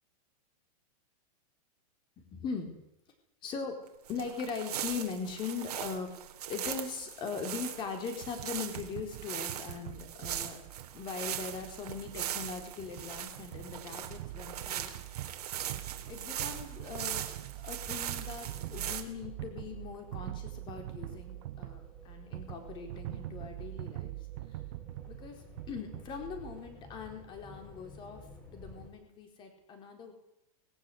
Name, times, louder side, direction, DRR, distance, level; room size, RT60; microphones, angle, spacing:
voice 1, 2.2-2.8 3.4-3.8 4.1-6.1 6.5-10.6 10.9-15.0 16.1-17.2 17.6-24.2 25.1-28.2 28.5-30.1, left 5 dB, 25° left, 5 dB, 4.2 m, -40 dB
sound 1, 4.1-19.0, right 10 dB, 90° right, 2.9 m, -40 dB
sound 2, 8.2-26.6, right 16 dB, 45° right, 0.9 m, -44 dB
sound 3, 17.8-28.9, left 1 dB, 5° left, 4.7 m, -55 dB
20.5 x 17.0 x 8.0 m, 0.84 s
supercardioid pair, 165°, 19 cm